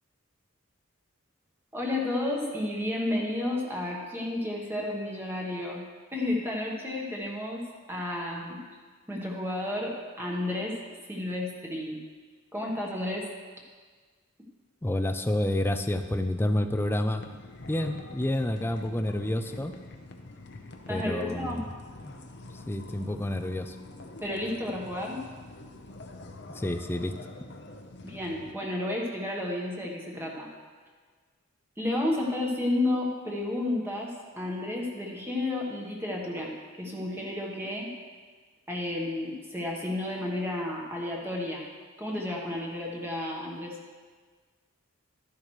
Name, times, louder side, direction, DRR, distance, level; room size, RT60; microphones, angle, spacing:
voice 1, 1.7-5.8 6.1-7.6 7.9-8.6 9.1-10.8 11.1-12.0 12.5-13.3 20.9-21.6 24.2-25.2 28.0-30.5 31.8-37.9 38.7-41.6 42.0-43.8, left 1 dB, 10° right, -2 dB, 1.2 m, -31 dB
voice 2, 14.8-17.2 17.7-19.7 20.9-21.7 22.0-22.1 22.5-23.8 26.5-27.2, left 1 dB, 10° left, 8 dB, 0.4 m, -29 dB
sound 1, 17.2-28.5, left 2 dB, 55° left, 0.8 m, -46 dB
12.0 x 10.5 x 3.2 m, 1.5 s
head